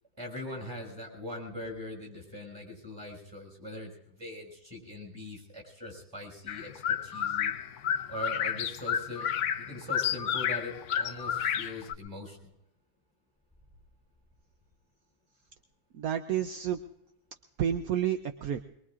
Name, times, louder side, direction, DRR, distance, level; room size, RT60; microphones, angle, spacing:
voice 1, 0.2-7.5 8.1-9.3 9.6-12.5, left 1 dB, 10° right, 0 dB, 5.7 m, -41 dB
sound 1, 6.5-11.9, left 9 dB, 65° left, 0.7 m, -31 dB
voice 2, 15.9-16.8 17.6-18.6, right 10 dB, 65° right, 7 dB, 0.9 m, -30 dB
23.5 x 23.0 x 2.5 m, 0.82 s
omnidirectional pair, 2.1 m